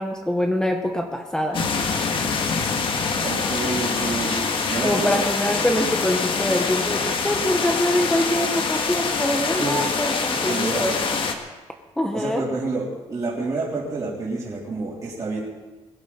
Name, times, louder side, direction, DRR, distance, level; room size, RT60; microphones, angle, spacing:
voice 1, 0.0-1.6 4.8-11.0 12.0-12.5, left 1 dB, 5° left, 4 dB, 0.9 m, -24 dB
sound 1, 1.5-11.3, left 4 dB, 45° left, 1.5 m, -25 dB
voice 2, 3.2-5.1 9.6-9.8 10.5-11.1 12.1-15.4, right 3 dB, 30° right, -7 dB, 3.7 m, -28 dB
21.5 x 12.0 x 4.2 m, 1.2 s
cardioid pair, 135°, 12 cm